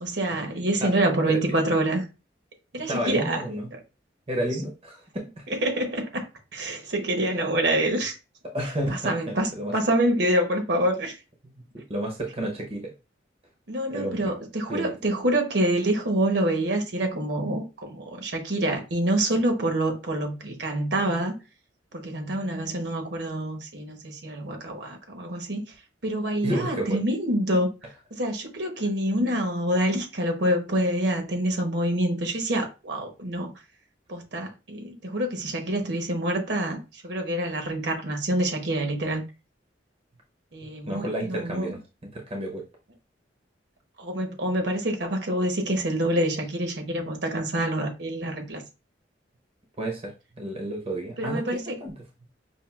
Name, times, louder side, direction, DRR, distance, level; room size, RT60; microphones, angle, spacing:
voice 1, 0.0-2.1 2.7-3.4 3.7-3.8 5.5-6.3 6.5-8.1 8.9-11.2 13.7-21.3 21.9-25.6 26.0-27.7 28.1-33.5 34.1-39.2 40.5-41.8 44.0-48.6 51.2-51.7, right 1 dB, 65° right, 1.0 m, -26 dB
voice 2, 2.9-3.7 4.3-5.6 8.5-9.7 11.4-12.9 13.9-14.3 14.7-14.9 26.4-27.0 40.9-41.8 42.1-42.6 49.8-50.1 50.4-51.4 51.8-51.9, right 1 dB, 35° right, 0.7 m, -31 dB
5.5 x 2.5 x 2.4 m
head